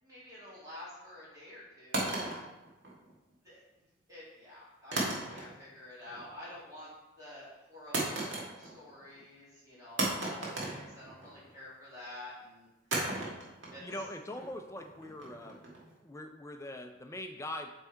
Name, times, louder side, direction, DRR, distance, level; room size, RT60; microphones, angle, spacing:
voice 1, 0.0-2.4 3.4-3.6 4.1-6.9 7.2-8.3 8.6-12.7 13.7-13.8, left 1 dB, 15° right, -8 dB, 2.5 m, -49 dB
sound 1, 1.9-3.3 4.9-5.8 6.1-6.5 7.9-8.9 9.2-9.3 10.0-11.5 12.9-15.9, right 2 dB, 60° right, 1.6 m, -36 dB
voice 2, 13.8-15.6 16.0-17.7, left 1 dB, 15° left, 5 dB, 0.4 m, -42 dB
7.8 x 3.6 x 4.5 m, 1.0 s
head